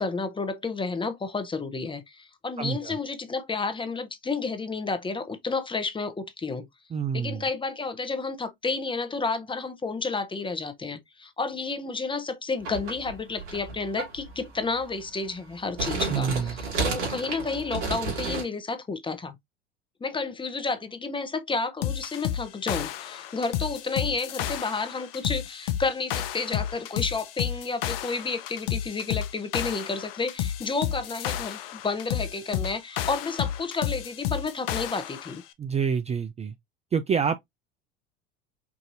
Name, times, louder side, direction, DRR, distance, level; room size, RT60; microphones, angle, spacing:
voice 1, 0.0-6.7 7.1-19.4 20.0-35.4, left 4 dB, 15° left, 0.8 m, -31 dB
voice 2, 2.6-3.0 6.9-7.5 16.1-16.6 35.6-36.5 36.9-37.4, right 6 dB, 20° right, 0.4 m, -27 dB
sound 1, 12.6-14.6 14.9-15.0 15.5-18.4, right 3 dB, 65° right, 2.4 m, -31 dB
sound 2, 21.8-35.4, left 11 dB, 75° left, 0.6 m, -32 dB
4.8 x 2.6 x 2.6 m
hypercardioid pair, 75°, 29 cm